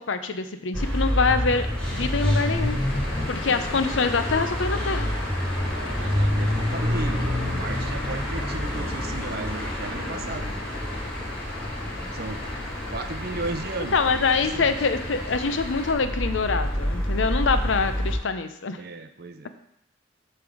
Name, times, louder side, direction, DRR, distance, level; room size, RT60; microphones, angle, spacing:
voice 1, 0.0-1.7 1.9-2.8 3.3-5.1 13.9-18.8, left 4 dB, 80° left, 9 dB, 0.6 m, -25 dB
sound 1, 0.7-18.2, left 1 dB, 5° left, 3.2 m, -28 dB
sound 2, 1.8-15.9, left 1 dB, 55° left, 1.7 m, -40 dB
voice 2, 5.7-10.5 12.1-12.4 12.9-14.7 18.8-19.6, right 2 dB, 50° right, 7 dB, 0.6 m, -35 dB
8.2 x 3.4 x 6.2 m, 0.76 s
head